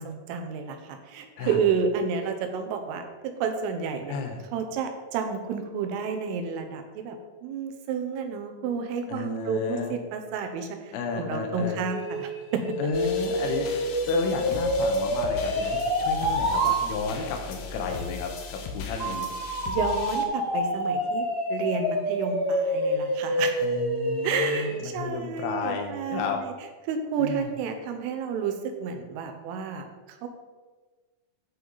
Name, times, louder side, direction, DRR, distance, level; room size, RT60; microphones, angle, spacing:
voice 1, 0.0-4.2 4.5-12.8 15.6-15.7 19.7-23.7 24.2-26.4 26.9-30.3, right 6 dB, 90° right, 6 dB, 3.5 m, -31 dB
voice 2, 4.1-4.4 9.1-9.9 10.9-11.8 12.8-19.3 23.6-26.4 27.2-27.5, left 5 dB, 90° left, 3 dB, 3.7 m, -32 dB
sound 1, 11.6-16.8 19.0-24.8, equal, 10° right, 1.1 m, -27 dB
sound 2, 12.9-20.3, left 5 dB, 75° left, 2.5 m, -38 dB
14.0 x 4.7 x 4.0 m, 1.3 s
omnidirectional pair, 5.6 m